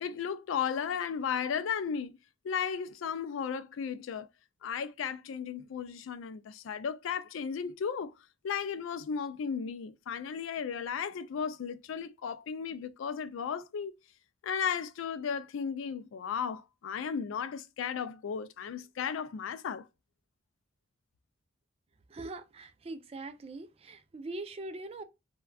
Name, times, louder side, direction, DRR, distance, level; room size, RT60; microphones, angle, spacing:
voice 1, 0.0-2.1 2.4-4.3 4.6-8.1 8.4-13.9 14.4-19.9, left 7 dB, 85° left, 0.4 m, -35 dB
voice 2, 22.1-25.0, right 2 dB, 30° right, 0.4 m, -42 dB
3.4 x 2.2 x 2.2 m
head